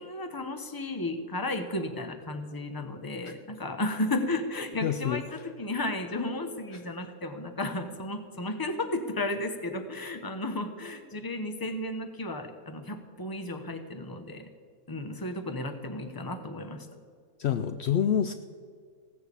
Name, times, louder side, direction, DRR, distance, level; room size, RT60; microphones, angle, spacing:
voice 1, 0.0-14.5 14.9-16.9, left 2 dB, 20° left, 7 dB, 0.8 m, -33 dB
voice 2, 4.8-5.4 6.7-6.8 17.4-18.3, left 9 dB, 75° left, 9 dB, 0.6 m, -27 dB
16.5 x 6.5 x 8.3 m, 2.1 s
omnidirectional pair, 1.6 m